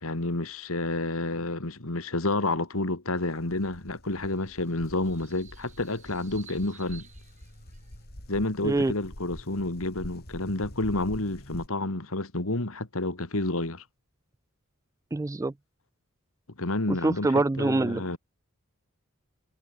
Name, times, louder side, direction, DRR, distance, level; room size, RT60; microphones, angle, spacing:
voice 1, 0.0-7.1 8.3-13.8 16.6-18.2, left 2 dB, 75° left, 2.3 m, -30 dB
sound 1, 3.2-11.7, equal, 45° left, 5.0 m, -46 dB
sound 2, 4.1-8.1, right 8 dB, 35° right, 5.3 m, -55 dB
voice 2, 15.1-15.5 16.9-18.2, right 2 dB, 15° right, 0.3 m, -25 dB
head